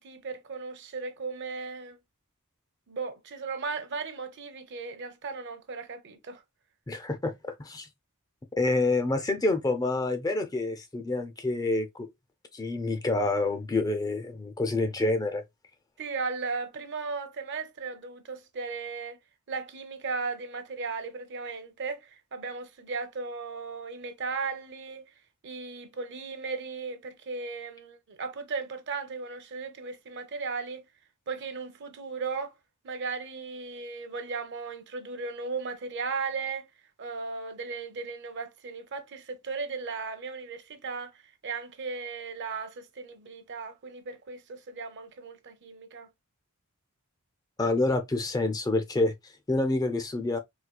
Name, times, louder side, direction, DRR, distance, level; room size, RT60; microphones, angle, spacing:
voice 1, 0.0-2.0 2.9-6.4 16.0-19.2 19.5-25.1 25.4-30.8 31.3-32.5 32.8-36.7 37.0-46.1, right 4 dB, 50° right, 0.6 m, -36 dB
voice 2, 6.9-7.9 8.6-12.1 12.5-15.4 47.6-50.4, left 2 dB, 15° left, 0.4 m, -28 dB
4.2 x 2.3 x 2.2 m
head